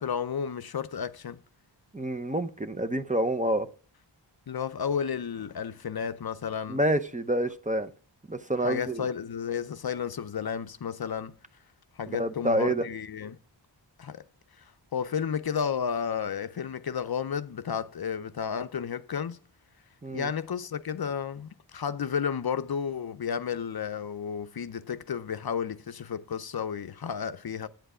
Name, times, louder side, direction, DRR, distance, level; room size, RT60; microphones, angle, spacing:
voice 1, 0.0-1.4 4.5-6.8 8.6-11.3 12.0-13.4 14.0-14.2 14.6-14.7 14.9-19.4 20.1-27.7, left 7 dB, 55° left, 0.6 m, -32 dB
voice 2, 1.9-3.7 6.7-7.9 8.3-9.1 12.1-12.9 20.0-20.3, right 1 dB, 15° right, 0.6 m, -28 dB
9.0 x 7.9 x 4.8 m
wide cardioid pair, 70°, 45 cm